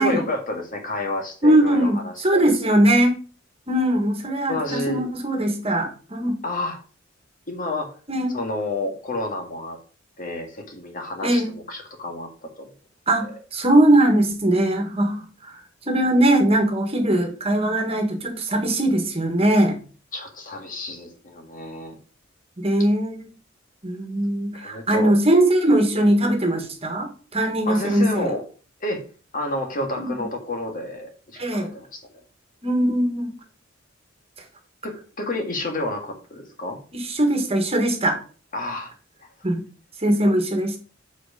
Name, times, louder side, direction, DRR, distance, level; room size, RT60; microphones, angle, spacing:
voice 1, 0.0-2.5 4.5-5.1 6.4-6.8 7.5-8.0 8.3-9.8 10.2-12.7 13.2-13.4 20.1-22.0 24.5-25.1 27.7-28.4 28.8-29.0 29.3-32.1 34.8-36.8 38.5-38.9 40.2-40.3, left 2 dB, 45° left, 3 dB, 1.8 m, -30 dB
voice 2, 1.4-3.2 3.7-6.4 8.1-8.3 11.2-11.5 13.1-15.6 15.9-19.7 22.6-23.3 23.8-28.3 30.0-30.2 31.4-31.7 32.6-33.3 36.9-38.2 39.4-39.6 40.0-40.8, right 1 dB, 30° right, 4 dB, 1.6 m, -20 dB
8.2 x 4.7 x 4.9 m, 0.37 s
head